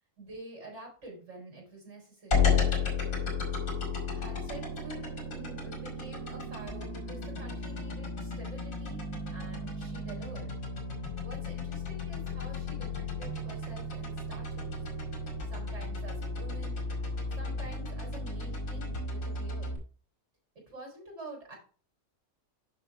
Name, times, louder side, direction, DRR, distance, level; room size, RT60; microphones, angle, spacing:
voice 1, 0.2-2.5 4.1-5.0 5.3-9.0 9.3-10.5 11.2-14.8 15.5-16.8 17.3-19.8 20.5-21.6, right 2 dB, 55° right, -2 dB, 4.6 m, -47 dB
sound 1, 2.3-19.8, left 4 dB, 70° left, 2.6 m, -33 dB
6.7 x 5.8 x 4.7 m, 0.39 s
omnidirectional pair, 1.5 m